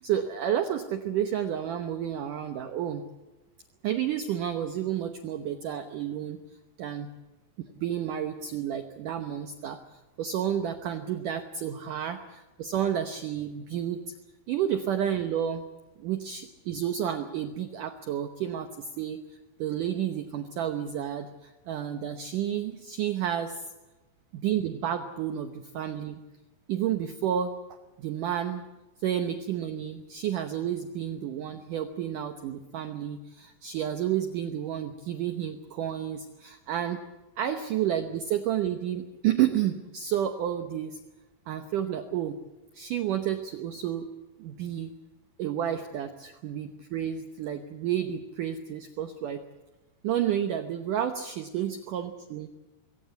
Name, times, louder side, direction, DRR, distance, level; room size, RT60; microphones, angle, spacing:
voice 1, 0.0-3.0 3.8-6.4 6.8-7.1 7.7-9.8 10.2-14.0 14.5-15.6 16.0-19.2 19.6-23.6 24.3-26.2 26.7-27.5 28.0-28.6 29.0-37.0 37.4-41.0 41.5-42.4 42.7-44.1 44.4-44.9 45.4-49.4 50.0-52.5, right 10 dB, 85° right, 8 dB, 1.8 m, -30 dB
22.5 x 17.0 x 8.2 m, 1.1 s
omnidirectional pair, 5.3 m